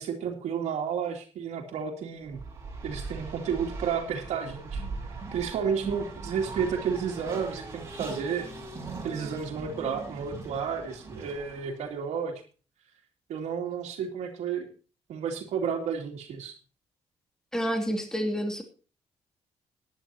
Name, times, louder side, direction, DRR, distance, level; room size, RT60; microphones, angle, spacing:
voice 1, 0.0-2.4 2.8-8.5 9.0-12.4 13.3-14.7 15.1-16.5, right 7 dB, 85° right, 1 dB, 2.7 m, -32 dB
Race car auto racing, 2.2-11.9, right 3 dB, 25° right, 5.1 m, -40 dB
voice 2, 17.5-18.6, equal, 5° left, 4 dB, 2.6 m, -29 dB
20.0 x 10.5 x 2.9 m, 0.36 s
cardioid pair, 150°, 11 cm